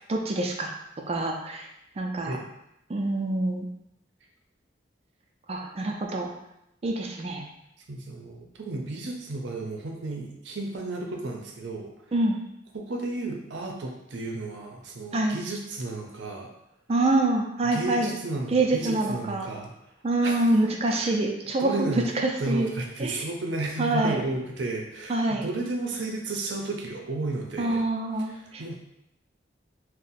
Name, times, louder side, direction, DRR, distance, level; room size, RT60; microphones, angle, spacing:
voice 1, 0.1-0.7 1.1-1.7 2.0-2.4 2.9-3.7 5.5-6.3 6.8-7.4 12.1-12.4 15.1-15.4 16.9-18.2 18.5-19.5 20.0-22.7 23.0-23.2 23.8-24.3 25.1-25.5 27.6-28.8, right 2 dB, 35° right, 2 dB, 0.4 m, -26 dB
voice 2, 7.9-11.9 12.7-16.5 17.7-19.7 20.2-20.5 20.9-21.2 21.6-27.8 28.3-28.8, right 2 dB, 85° right, 1 dB, 0.6 m, -33 dB
2.7 x 2.1 x 4.0 m, 0.83 s
head